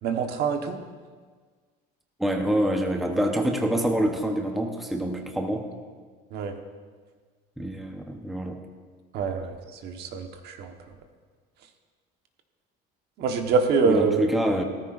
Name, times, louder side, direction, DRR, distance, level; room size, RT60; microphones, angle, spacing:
voice 1, 0.0-0.8 6.3-6.5 9.1-10.7 13.2-14.2, right 5 dB, 55° right, 4 dB, 1.3 m, -25 dB
voice 2, 2.2-5.7 7.6-8.6 13.8-14.6, equal, ahead, 2 dB, 0.9 m, -26 dB
17.0 x 14.0 x 2.6 m, 1.5 s
cardioid pair, 130°, 20 cm